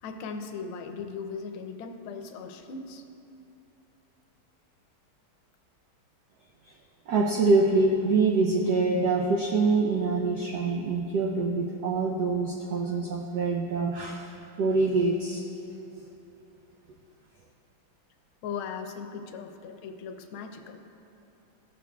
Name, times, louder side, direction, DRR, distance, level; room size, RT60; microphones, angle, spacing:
voice 1, 0.0-3.0 12.9-13.0 18.4-20.8, left 5 dB, 80° left, 5 dB, 1.4 m, -38 dB
voice 2, 7.1-14.3 14.6-15.4, right 3 dB, 80° right, 0 dB, 0.8 m, -25 dB
15.0 x 6.4 x 2.3 m, 2.8 s
omnidirectional pair, 2.3 m